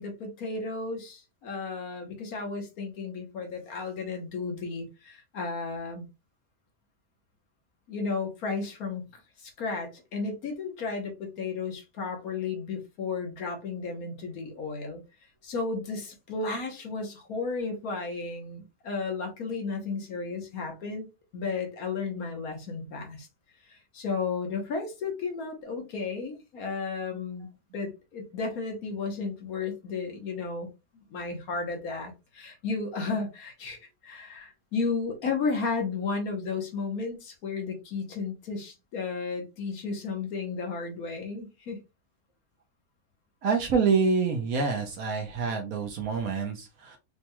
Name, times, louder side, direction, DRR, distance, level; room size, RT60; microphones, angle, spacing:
voice 1, 0.0-6.0 7.9-9.0 9.4-15.0 15.4-21.1 21.3-23.3 23.7-27.5 27.7-30.7 31.1-41.8, left 4 dB, 80° left, 1.5 m, -33 dB
voice 2, 43.4-47.0, right 5 dB, 75° right, 1.2 m, -27 dB
5.1 x 2.3 x 2.9 m
omnidirectional pair, 1.5 m